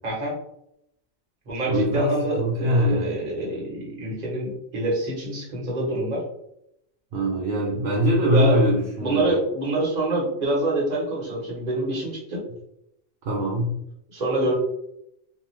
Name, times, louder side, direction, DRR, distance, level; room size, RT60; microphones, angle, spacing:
voice 1, 0.0-0.3 1.5-6.2 8.3-8.6 9.0-12.4 14.1-14.5, right 1 dB, 35° right, -4 dB, 1.0 m, -26 dB
voice 2, 1.7-3.1 7.1-9.3 13.2-13.7, equal, 65° right, -3 dB, 0.8 m, -22 dB
2.8 x 2.2 x 3.0 m, 0.78 s
omnidirectional pair, 1.3 m